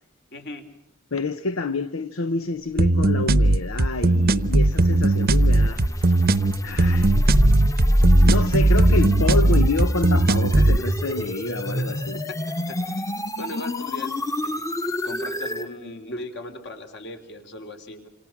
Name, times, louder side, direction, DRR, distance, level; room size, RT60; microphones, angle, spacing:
voice 1, 0.3-0.6 11.8-11.9 12.7-12.8 13.4-14.6 15.0-18.1, left 1 dB, 60° left, 3.9 m, -37 dB
voice 2, 1.1-6.2 6.6-7.2 8.2-12.2, left 3 dB, 90° left, 0.9 m, -28 dB
sound 1, 2.8-10.8, right 2 dB, 50° right, 0.8 m, -18 dB
sound 2, 3.5-15.7, equal, 15° left, 1.2 m, -24 dB
28.0 x 27.5 x 6.1 m
head